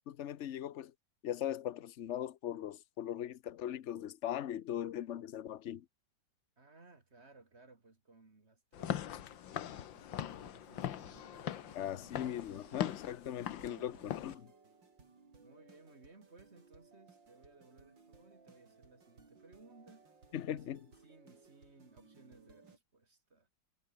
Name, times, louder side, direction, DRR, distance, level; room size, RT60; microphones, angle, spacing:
voice 1, 0.1-0.9 1.2-5.8 11.7-14.0 14.2-14.3 20.3-20.8, left 11 dB, 50° left, 0.9 m, -39 dB
voice 2, 6.6-12.3 13.3-14.2 15.4-20.1 20.4-23.5, right 3 dB, 35° right, 3.1 m, -61 dB
Walk footsteps / Siren, 8.7-14.3, left 11 dB, 90° left, 1.8 m, -41 dB
sound 1, 10.2-22.8, right 4 dB, 75° right, 4.4 m, -62 dB
omnidirectional pair, 2.0 m